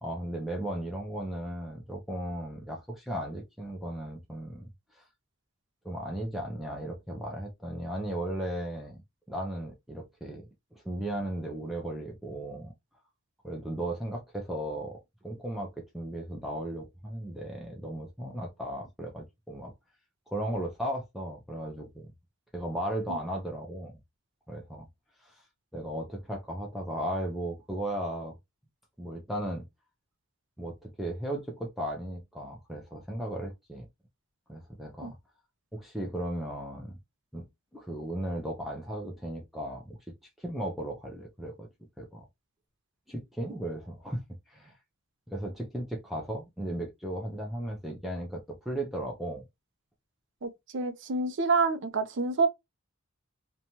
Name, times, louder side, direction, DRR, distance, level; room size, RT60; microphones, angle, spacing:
voice 1, 0.0-4.7 4.9-5.1 5.8-9.0 9.3-12.7 13.4-19.7 20.3-22.1 22.5-23.9 24.5-24.9 25.2-25.4 25.7-28.4 29.0-29.6 30.6-33.9 34.5-35.2 35.7-37.0 37.3-37.5 37.7-40.0 40.4-41.7 42.0-42.3 43.1-44.8 45.3-49.4, right 1 dB, ahead, 0.5 m, -36 dB
voice 2, 50.4-52.5, right 4 dB, 60° right, 0.5 m, -28 dB
2.7 x 2.2 x 2.9 m
head